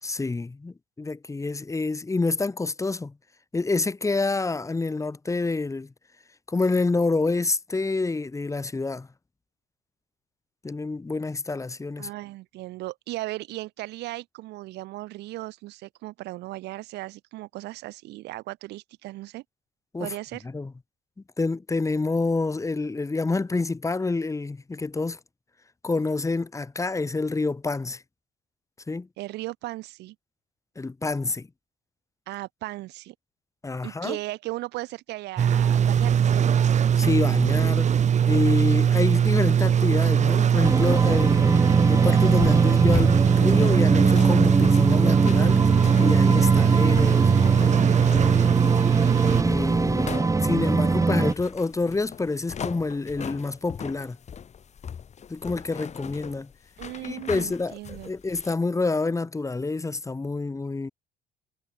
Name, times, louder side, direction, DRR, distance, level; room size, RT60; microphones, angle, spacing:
voice 1, 0.0-3.1 3.5-5.9 6.5-9.1 10.6-12.1 19.9-20.1 20.4-20.7 21.4-25.2 25.8-28.0 28.9-29.1 30.8-31.5 33.6-34.2 37.0-37.9 38.3-45.7 46.0-47.3 49.4-50.1 50.4-54.2 55.3-56.5 57.0-60.9, left 3 dB, 20° left, 4.8 m, -27 dB
voice 2, 12.0-19.4 20.0-20.5 29.2-30.2 32.3-33.1 33.8-36.7 56.8-58.1, right 18 dB, 85° right, 4.1 m, -36 dB
sound 1, 35.4-49.4, right 8 dB, 45° right, 2.0 m, -21 dB
sound 2, 40.6-51.3, right 3 dB, 20° right, 2.1 m, -22 dB
sound 3, 42.0-58.6, left 7 dB, 40° left, 5.4 m, -39 dB
cardioid pair, 110°, 17 cm